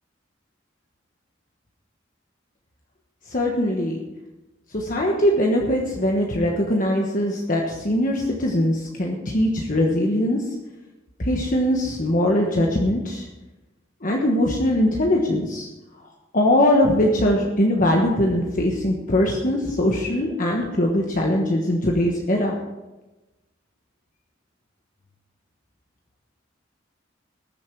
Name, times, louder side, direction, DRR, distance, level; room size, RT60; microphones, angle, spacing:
voice 1, 3.3-4.0 4.7-10.4 11.2-13.3 14.0-15.7 16.3-22.5, left 1 dB, 45° left, 0 dB, 1.3 m, -21 dB
20.0 x 7.1 x 4.7 m, 1.1 s
head